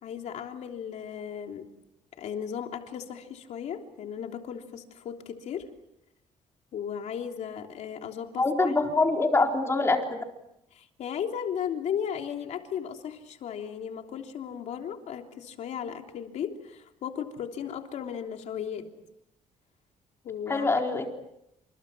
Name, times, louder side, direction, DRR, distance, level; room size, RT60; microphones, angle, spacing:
voice 1, 0.0-1.7 2.1-5.7 6.7-8.8 10.7-18.9 20.2-20.7, left 8 dB, 60° left, 4 dB, 3.3 m, -36 dB
voice 2, 8.4-10.0 20.5-21.1, left 3 dB, 20° left, 2 dB, 4.2 m, -24 dB
30.0 x 27.5 x 6.2 m, 0.83 s
cardioid pair, 140°, 13 cm